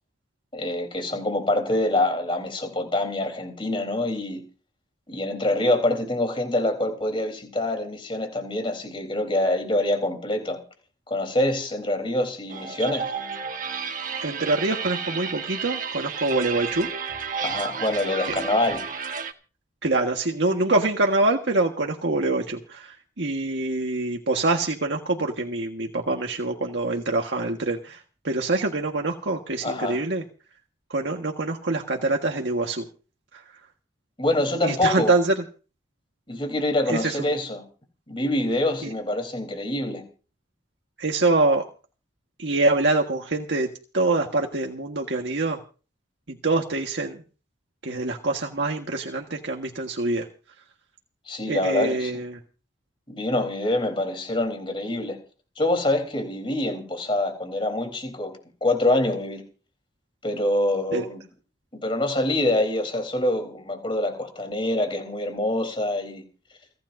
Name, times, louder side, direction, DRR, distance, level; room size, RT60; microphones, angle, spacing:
voice 1, 0.5-4.4 5.1-10.6 11.1-13.1 17.4-18.8 29.6-30.0 34.2-35.2 36.3-37.6 38.1-40.0 51.3-52.1 53.1-55.2 55.6-58.3 58.6-59.4 60.2-61.2 61.7-66.2, left 1 dB, 30° left, 3.9 m, -25 dB
sound 1, 12.5-19.3, right 6 dB, 45° right, 1.4 m, -32 dB
voice 2, 14.2-16.9 18.3-18.4 19.8-28.0 28.2-30.2 30.9-32.8 34.6-35.3 36.9-37.2 41.0-41.6 42.4-43.7 43.9-45.6 46.4-47.2 47.8-50.2 51.5-52.3 60.9-61.0, right 2 dB, 85° right, 1.6 m, -25 dB
29.5 x 10.5 x 2.7 m
head